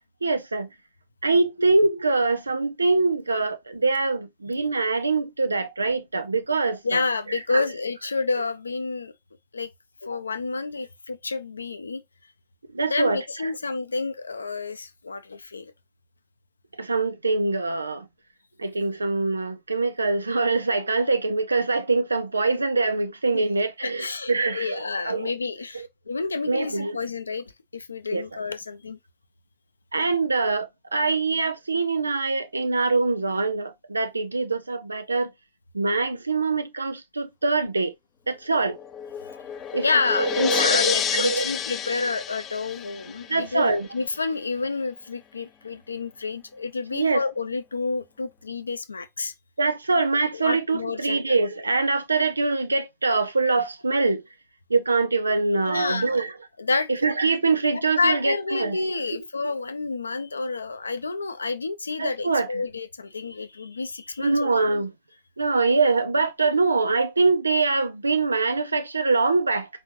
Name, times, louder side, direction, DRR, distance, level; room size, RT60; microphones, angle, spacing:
voice 1, 0.2-0.7 1.2-7.0 7.3-7.6 12.7-13.2 16.8-18.0 18.6-25.3 26.5-27.0 28.1-28.2 29.9-35.3 35.7-37.9 38.3-38.8 39.7-39.8 40.2-41.5 43.3-43.9 46.9-47.2 49.6-54.2 54.7-56.3 57.0-58.8 62.0-62.5 64.2-64.9 65.4-69.7, right 3 dB, 80° right, 0.5 m, -24 dB
voice 2, 6.8-9.1 9.5-9.7 10.0-12.0 12.9-15.7 23.3-23.4 23.8-27.4 27.7-29.0 39.3-39.4 39.8-49.3 50.3-51.4 55.6-56.2 56.6-56.9 57.7-64.5, left 3 dB, 80° left, 0.6 m, -29 dB
sound 1, 38.5-43.6, left 9 dB, 30° left, 0.6 m, -29 dB
4.8 x 4.0 x 2.6 m
figure-of-eight pair, 90°, 0 cm